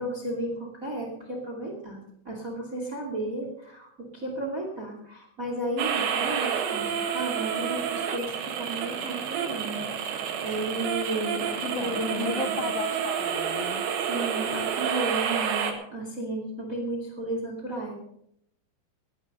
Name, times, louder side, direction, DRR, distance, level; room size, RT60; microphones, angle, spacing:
voice 1, 0.0-12.6 14.1-17.9, right 2 dB, 25° right, 1 dB, 1.8 m, -33 dB
sound 1, 5.8-15.7, right 7 dB, 70° right, 3.7 m, -29 dB
voice 2, 11.6-13.9, left 10 dB, 90° left, 10 dB, 2.3 m, -35 dB
19.5 x 9.5 x 5.5 m, 0.74 s
omnidirectional pair, 5.6 m